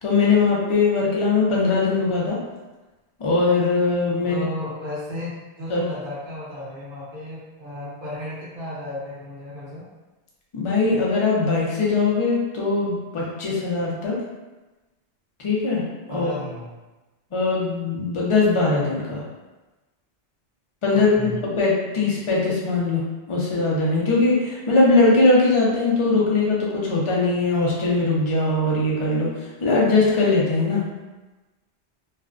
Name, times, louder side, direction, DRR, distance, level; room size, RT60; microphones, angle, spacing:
voice 1, 0.0-2.4 3.2-4.5 5.7-5.8 10.5-14.2 15.4-15.9 16.1-16.3 17.3-19.2 20.8-30.8, left 3 dB, 45° left, -4 dB, 0.4 m, -21 dB
voice 2, 4.2-9.8 16.1-16.7 20.9-21.4, left 1 dB, 55° right, -9 dB, 0.8 m, -34 dB
2.4 x 2.1 x 2.4 m, 1.1 s
omnidirectional pair, 1.1 m